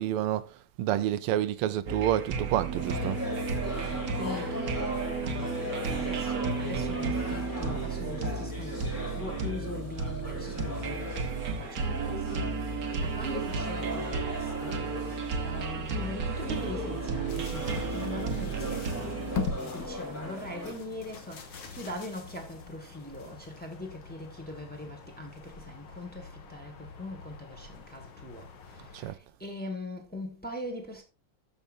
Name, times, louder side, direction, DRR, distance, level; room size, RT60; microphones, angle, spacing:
voice 1, 0.0-3.2 19.0-19.1 28.9-29.2, right 12 dB, 85° right, 1.6 m, -29 dB
sound 1, 1.9-19.5, right 5 dB, 50° right, 1.3 m, -33 dB
sound 2, 2.7-20.7, left 1 dB, 35° left, 2.7 m, -39 dB
voice 2, 3.8-14.9 15.1-19.1 19.6-31.0, left 1 dB, 5° left, 1.3 m, -42 dB
sound 3, 17.3-29.1, left 4 dB, 60° left, 1.9 m, -42 dB
13.5 x 5.4 x 2.6 m
omnidirectional pair, 2.4 m